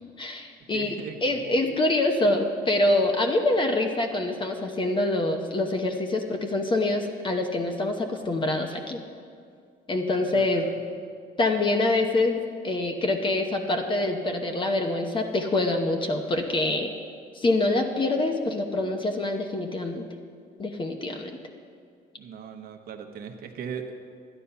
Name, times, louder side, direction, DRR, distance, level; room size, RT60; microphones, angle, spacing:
voice 1, 0.2-9.0 9.9-10.6 11.4-12.4 12.6-16.9 17.3-20.1 20.6-21.4, left 2 dB, 30° left, 4 dB, 0.9 m, -25 dB
voice 2, 0.7-1.7 10.3-10.8 22.2-24.2, right 6 dB, 60° right, 5 dB, 1.2 m, -39 dB
11.5 x 10.0 x 5.7 m, 2.2 s
cardioid pair, 110°, 17 cm